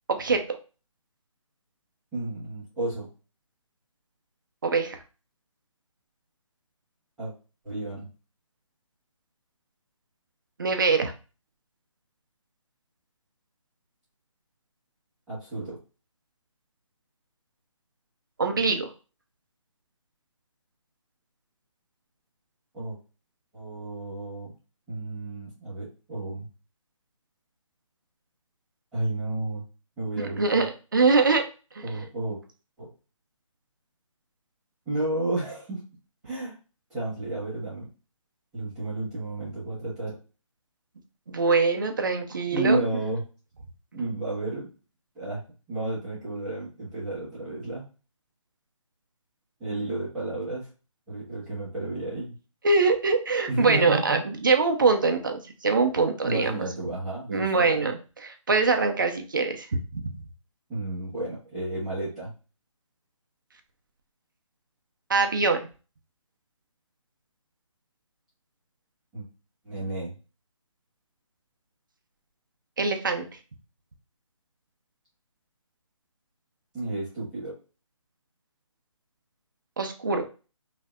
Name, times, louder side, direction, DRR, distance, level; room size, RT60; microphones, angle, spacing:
voice 1, 0.1-0.4 4.6-5.0 10.6-11.1 18.4-18.9 30.4-31.4 41.3-42.8 52.6-56.5 57.3-57.9 58.2-60.0 65.1-65.7 72.8-73.2 79.8-80.3, right 4 dB, 40° right, 5 dB, 0.6 m, -23 dB
voice 2, 2.1-3.1 7.2-7.3 7.6-8.1 15.3-15.8 22.7-23.0 23.5-24.5 24.9-26.5 28.9-29.6 30.0-30.7 31.8-32.4 32.8-32.9 34.9-35.8 36.2-36.5 36.9-37.9 38.5-40.1 42.5-43.2 43.9-44.7 45.1-45.4 45.7-47.9 49.6-50.7 51.1-52.3 53.5-54.2 56.2-57.9 60.7-62.3 69.1-69.3 69.6-70.1 76.7-77.5, right 2 dB, 5° right, -13 dB, 1.1 m, -31 dB
5.3 x 2.8 x 2.4 m, 0.33 s
hypercardioid pair, 175°, 17 cm